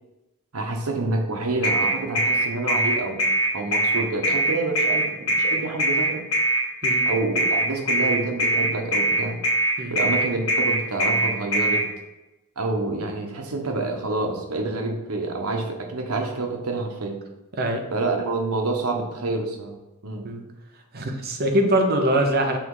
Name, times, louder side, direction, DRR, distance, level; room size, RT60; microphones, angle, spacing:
voice 1, 0.5-3.2 3.5-6.2 7.0-9.4 9.9-11.9 12.6-17.2 17.9-19.7 20.0-20.2, right 3 dB, 80° right, 2 dB, 1.1 m, -27 dB
sound 1, 1.6-11.8, right 1 dB, 70° left, 1.7 m, -21 dB
voice 2, 20.9-22.6, right 1 dB, 45° right, 4 dB, 0.9 m, -23 dB
6.0 x 3.5 x 4.8 m, 0.98 s
head